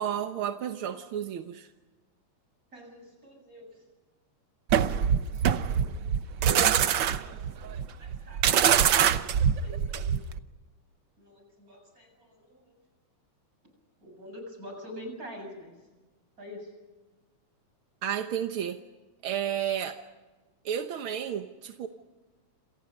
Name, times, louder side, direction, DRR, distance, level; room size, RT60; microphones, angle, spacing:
voice 1, 0.0-1.7 6.7-7.0 18.0-18.8 19.2-20.0 20.6-21.9, right 9 dB, 60° right, 6 dB, 1.5 m, -32 dB
voice 2, 2.7-3.8 4.9-5.9 7.0-9.1 9.4-10.4 11.2-12.8 14.0-15.7 16.4-16.7, equal, 25° right, 3 dB, 7.8 m, -47 dB
sound 1, 4.7-10.4, right 8 dB, 85° right, 1.0 m, -24 dB
28.5 x 27.5 x 5.4 m, 1.2 s
omnidirectional pair, 3.4 m